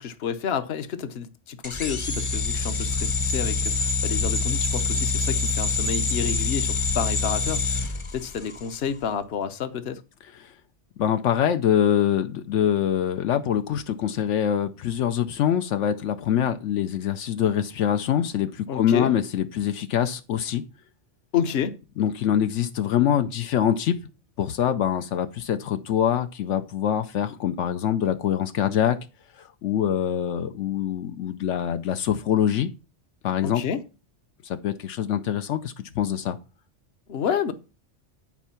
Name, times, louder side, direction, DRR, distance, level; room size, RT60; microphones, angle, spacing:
voice 1, 0.0-10.0 18.7-19.1 21.3-21.8 33.4-33.8 37.1-37.5, left 7 dB, 60° left, 1.1 m, -30 dB
sound 1, 1.6-8.7, left 4 dB, 30° left, 0.8 m, -26 dB
voice 2, 11.0-20.6 22.0-24.0 24.4-29.0 29.4-32.7 33.2-33.6 34.4-36.4, left 9 dB, 85° left, 1.0 m, -24 dB
9.9 x 4.5 x 5.7 m
omnidirectional pair, 1.2 m